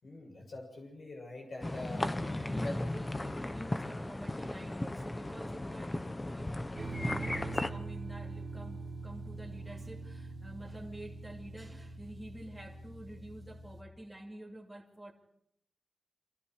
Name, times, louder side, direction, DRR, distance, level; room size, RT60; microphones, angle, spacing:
voice 1, 0.0-2.1 2.5-2.7, left 2 dB, 55° left, 7.0 m, -44 dB
sound 1, 1.6-7.7, left 1 dB, 20° left, 1.1 m, -36 dB
voice 2, 2.2-15.1, right 1 dB, 5° right, 2.6 m, -48 dB
sound 2, 6.8-13.8, right 3 dB, 35° right, 2.6 m, -43 dB
29.0 x 26.0 x 4.8 m
wide cardioid pair, 125°, 0 cm